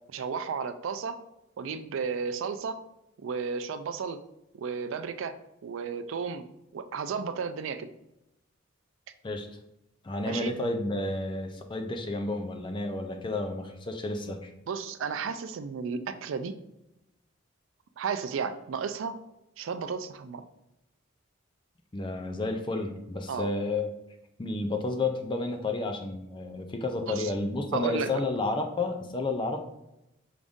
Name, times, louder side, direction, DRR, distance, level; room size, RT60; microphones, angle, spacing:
voice 1, 0.1-1.2 1.6-2.8 3.2-4.2 4.5-5.4 5.6-6.5 6.7-7.9 10.2-10.5 14.7-16.5 18.0-19.2 19.6-20.4 23.3-23.5 27.0-27.3 27.7-28.1, right 5 dB, 70° right, 10 dB, 0.4 m, -33 dB
voice 2, 10.0-14.5 21.9-23.9 24.4-29.7, left 2 dB, 25° left, 4 dB, 0.4 m, -31 dB
4.9 x 2.6 x 3.5 m, 0.87 s
head